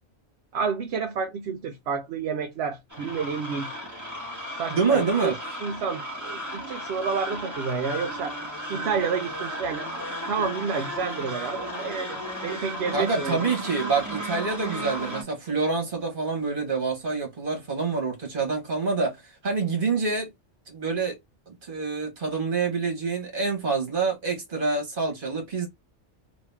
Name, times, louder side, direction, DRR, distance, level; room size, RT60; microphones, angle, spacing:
voice 1, 0.5-3.7 4.6-5.3 5.6-8.4 8.7-13.4, right 5 dB, 70° right, 0.8 m, -30 dB
sound 1, 2.9-15.2, equal, 15° right, 1.2 m, -35 dB
voice 2, 4.7-5.4 12.9-20.3 20.7-21.2 21.5-25.7, right 4 dB, 50° right, 1.6 m, -27 dB
3.1 x 2.8 x 3.4 m
omnidirectional pair, 1.2 m